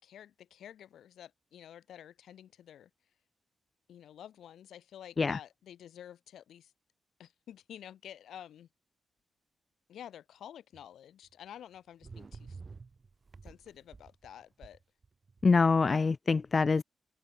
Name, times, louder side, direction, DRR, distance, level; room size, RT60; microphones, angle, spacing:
voice 1, 0.0-2.9 3.9-6.7 7.2-8.7 9.9-12.6 13.4-14.8, left 10 dB, 85° left, 6.1 m, -50 dB
sound 1, 10.7-10.8 12.0-15.6, right 4 dB, 35° right, 3.3 m, -50 dB
voice 2, 15.4-16.8, left 4 dB, 35° left, 0.3 m, -25 dB
cardioid pair, 105°, 0 cm